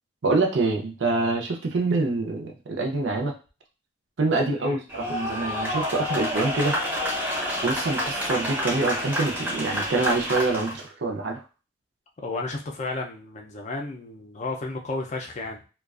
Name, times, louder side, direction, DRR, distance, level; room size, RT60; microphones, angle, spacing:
voice 1, 0.2-3.3 4.2-6.8 7.6-11.4, right 3 dB, 70° right, 2 dB, 0.6 m, -25 dB
sound 1, 4.9-10.8, equal, 10° right, 0.6 m, -28 dB
voice 2, 12.2-15.6, left 3 dB, 35° left, 2 dB, 0.4 m, -33 dB
2.4 x 2.2 x 2.3 m, 0.33 s
head